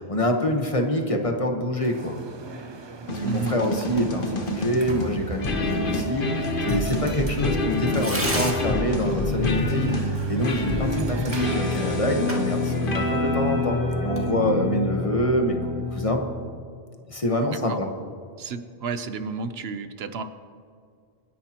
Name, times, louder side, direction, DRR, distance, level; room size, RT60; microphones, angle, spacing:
voice 1, 0.1-2.2 3.1-16.2 17.1-17.9, left 1 dB, 35° left, 3 dB, 1.2 m, -26 dB
sound 1, 1.8-12.0, right 4 dB, 30° right, 0.6 m, -40 dB
sound 2, 3.1-16.6, left 1 dB, 60° left, 1.3 m, -27 dB
voice 2, 3.2-3.6 17.7-17.8 18.4-20.2, right 5 dB, 75° right, 10 dB, 1.0 m, -31 dB
Tearing, 3.9-15.4, equal, 10° right, 2.0 m, -38 dB
25.5 x 10.5 x 3.0 m, 2.2 s
omnidirectional pair, 1.0 m